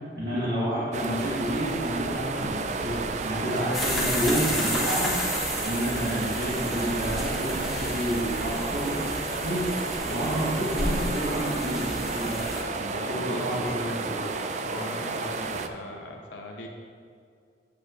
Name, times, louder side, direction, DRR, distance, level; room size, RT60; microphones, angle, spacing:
voice 1, 0.1-5.2 5.6-9.0 9.4-9.7 10.0-14.3, equal, 55° right, -9 dB, 1.4 m, -30 dB
sound 1, 0.9-15.7, right 4 dB, 40° right, 0.3 m, -32 dB
sound 2, 3.7-12.6, left 1 dB, ahead, 1.0 m, -32 dB
voice 2, 12.9-13.4 14.6-16.7, left 2 dB, 80° left, 0 dB, 0.8 m, -39 dB
8.4 x 7.8 x 2.5 m, 2.3 s
head